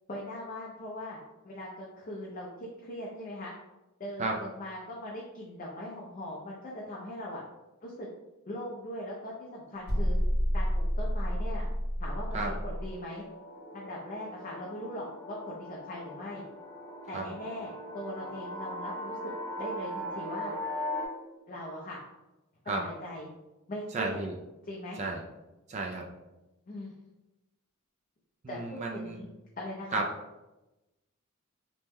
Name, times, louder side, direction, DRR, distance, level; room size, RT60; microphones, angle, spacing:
voice 1, 0.1-1.2 1.4-3.5 4.0-7.4 7.8-8.1 8.5-10.2 10.5-11.6 12.0-13.2 13.7-16.4 17.1-19.2 19.6-20.5 21.5-22.0 22.7-23.3 23.7-24.2 24.7-25.0 26.7-26.9 28.5-29.3 29.6-30.0, left 1 dB, 40° left, -4 dB, 0.5 m, -40 dB
sound 1, 9.9-12.9, equal, 80° right, 1.2 m, -29 dB
sound 2, 12.1-21.1, left 1 dB, 15° left, 0.9 m, -40 dB
voice 2, 23.9-24.3 25.0-25.2 25.7-26.1 28.4-29.2 29.9-30.0, right 3 dB, 30° right, 0 dB, 0.3 m, -32 dB
2.9 x 2.1 x 3.4 m, 1.0 s
head